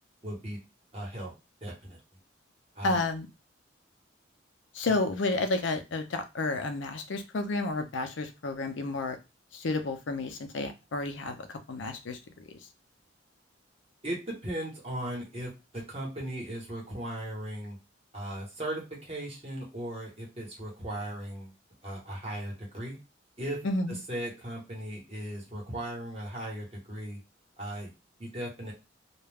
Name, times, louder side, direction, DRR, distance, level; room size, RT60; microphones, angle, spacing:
voice 1, 0.2-0.6 0.9-1.3 1.6-2.0 2.7-3.0 4.9-5.0 14.0-17.8 18.1-21.5 21.8-23.0 23.4-23.6 23.9-27.2 27.6-27.9 28.2-28.7, right 1 dB, 30° right, -2 dB, 1.0 m, -37 dB
voice 2, 2.8-3.3 4.7-9.2 9.5-12.6 23.6-24.0, left 2 dB, 75° left, 7 dB, 0.5 m, -31 dB
2.3 x 2.1 x 3.3 m, 0.26 s
head